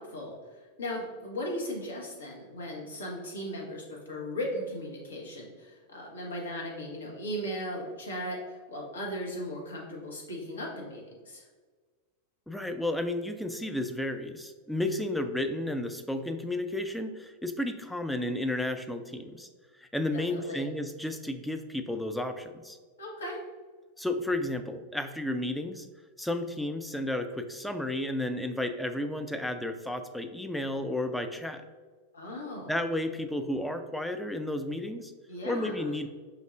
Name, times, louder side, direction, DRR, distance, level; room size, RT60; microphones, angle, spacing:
voice 1, 0.0-11.5 20.1-20.6 23.0-23.4 32.1-32.7 35.3-35.9, equal, 70° left, -2 dB, 1.1 m, -37 dB
voice 2, 12.5-19.5 19.8-22.8 24.0-25.9 26.2-31.6 32.7-35.1 35.4-36.1, left 1 dB, 5° left, 7 dB, 0.3 m, -32 dB
5.2 x 3.5 x 2.4 m, 1.5 s
figure-of-eight pair, 90°, 0 cm